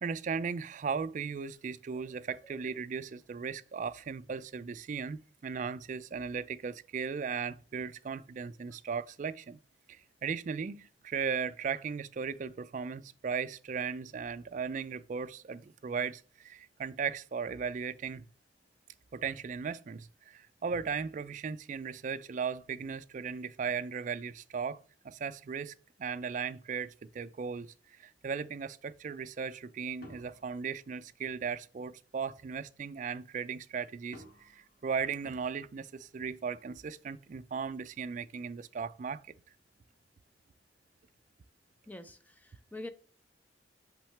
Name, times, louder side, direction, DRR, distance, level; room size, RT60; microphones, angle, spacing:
voice 1, 0.0-9.6 9.9-18.3 19.1-39.3, right 6 dB, 45° right, 0.3 m, -37 dB
sound 1, 30.0-31.5 34.1-35.9, equal, 55° left, 2.3 m, -56 dB
voice 2, 41.9-42.9, left 1 dB, 10° left, 0.5 m, -45 dB
5.9 x 5.6 x 3.3 m
head